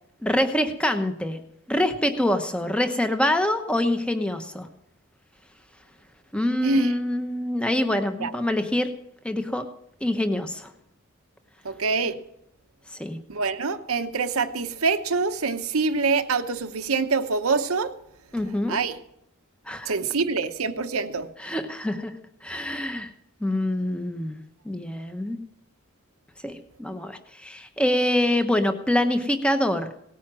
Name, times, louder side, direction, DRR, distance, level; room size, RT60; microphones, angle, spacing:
voice 1, 0.2-1.4 1.7-4.7 6.3-8.9 9.2-9.6 10.0-10.7 12.9-13.2 18.3-18.8 19.7-19.9 21.4-22.1 22.4-23.1 23.4-24.4 24.6-25.4 26.4-29.9, left 1 dB, 5° left, 7 dB, 1.0 m, -25 dB
voice 2, 6.6-6.9 8.2-8.3 11.6-12.2 13.3-17.9 18.7-19.0 19.9-21.3, right 4 dB, 75° right, 8 dB, 1.0 m, -25 dB
18.0 x 9.4 x 6.2 m, 0.78 s
head